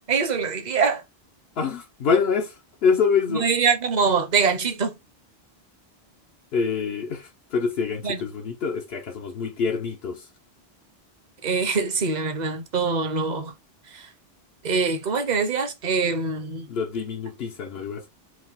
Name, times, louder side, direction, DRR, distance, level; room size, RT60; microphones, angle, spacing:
voice 1, 0.1-1.0 3.3-4.9 8.0-8.2 11.4-13.5 13.9-14.1 14.6-16.7, right 5 dB, 45° right, 0.9 m, -24 dB
voice 2, 1.6-3.5 6.5-10.3 16.7-18.1, left 5 dB, 75° left, 0.9 m, -26 dB
4.8 x 2.2 x 3.5 m
omnidirectional pair, 1.0 m